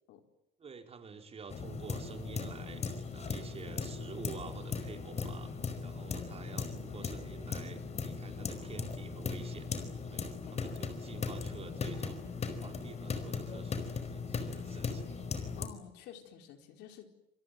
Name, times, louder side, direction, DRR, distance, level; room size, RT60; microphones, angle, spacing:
voice 1, 0.6-5.5 5.8-9.7 10.1-12.2 12.6-15.5, right 5 dB, 35° right, 5 dB, 4.9 m, -49 dB
sound 1, 1.5-15.7, left 5 dB, 40° left, 4.9 m, -38 dB
voice 2, 10.4-10.8 15.5-17.1, left 10 dB, 85° left, 5 dB, 4.5 m, -51 dB
28.0 x 22.0 x 9.2 m, 0.84 s
cardioid pair, 110°, 17 cm